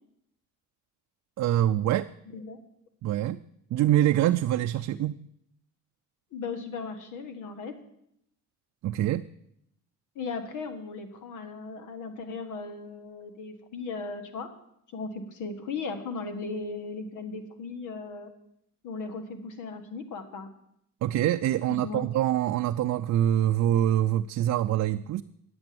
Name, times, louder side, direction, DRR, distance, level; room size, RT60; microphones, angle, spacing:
voice 1, 1.4-2.1 3.0-3.4 3.7-5.3 8.8-9.3 21.0-25.2, right 12 dB, 60° right, 9 dB, 0.4 m, -25 dB
voice 2, 6.3-7.7 10.1-14.5 14.9-18.3 18.8-20.5 21.7-22.0, left 4 dB, 80° left, 8 dB, 1.6 m, -37 dB
10.5 x 7.8 x 7.6 m, 0.75 s
cardioid pair, 90°, 30 cm